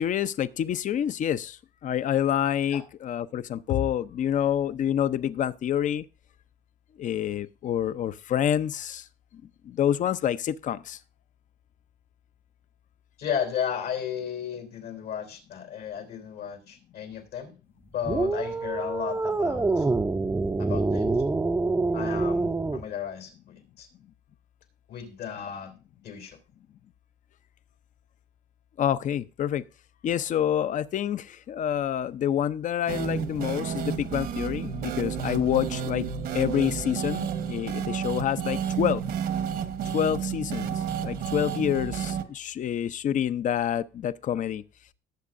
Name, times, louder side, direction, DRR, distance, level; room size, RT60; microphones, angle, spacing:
voice 1, 0.0-6.0 7.0-9.1 9.6-11.0 28.8-29.6 30.0-36.1 36.3-39.0 39.9-44.6, left 10 dB, 50° left, 0.6 m, -27 dB
voice 2, 13.2-17.5 17.9-19.9 20.6-21.2 21.9-23.3 23.8-23.9 24.9-25.7 26.0-26.4, left 8 dB, 80° left, 3.4 m, -34 dB
sound 1, 18.0-22.8, right 3 dB, 15° right, 0.5 m, -26 dB
sound 2, 32.9-42.2, right 8 dB, 70° right, 1.2 m, -31 dB
18.5 x 7.5 x 2.6 m
cardioid pair, 110°, 17 cm